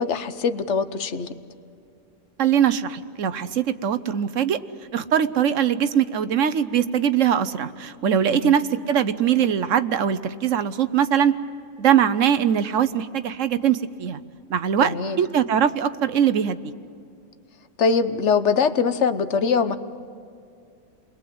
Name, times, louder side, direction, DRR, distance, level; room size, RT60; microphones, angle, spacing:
voice 1, 0.0-1.3 8.3-8.5 14.8-15.2 17.8-19.8, left 5 dB, 60° left, 11 dB, 1.3 m, -22 dB
voice 2, 2.4-4.6 4.9-11.3 11.8-14.2 14.5-16.6, right 9 dB, 70° right, 12 dB, 1.2 m, -21 dB
30.0 x 21.5 x 7.8 m, 2.4 s
omnidirectional pair, 1.4 m